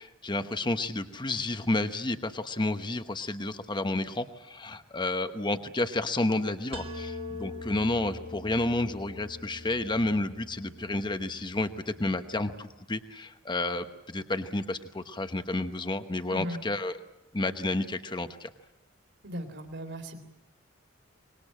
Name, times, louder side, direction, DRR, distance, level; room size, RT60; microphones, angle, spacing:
voice 1, 0.0-17.0 17.3-18.5, left 2 dB, 20° left, 9 dB, 1.0 m, -31 dB
sound 1, 6.7-12.5, left 2 dB, 30° right, 1.6 m, -43 dB
voice 2, 19.2-20.2, equal, 60° right, 5 dB, 3.5 m, -37 dB
25.0 x 20.5 x 8.7 m, 0.92 s
head